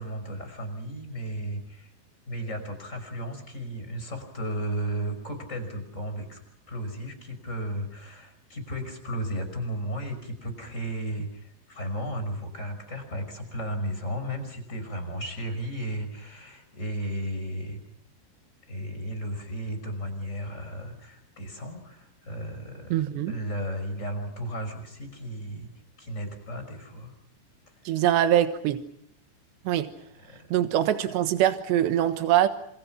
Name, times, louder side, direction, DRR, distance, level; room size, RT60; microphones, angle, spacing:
voice 1, 0.0-1.9 2.3-6.4 6.7-17.8 18.7-25.7 26.0-27.1 27.7-27.8 30.2-30.5, right 1 dB, 15° left, 7 dB, 5.6 m, -34 dB
voice 2, 22.9-23.3 27.9-28.8 29.7-29.9 30.5-32.5, right 12 dB, 90° right, 9 dB, 3.5 m, -23 dB
28.0 x 27.5 x 5.9 m, 0.71 s
omnidirectional pair, 4.9 m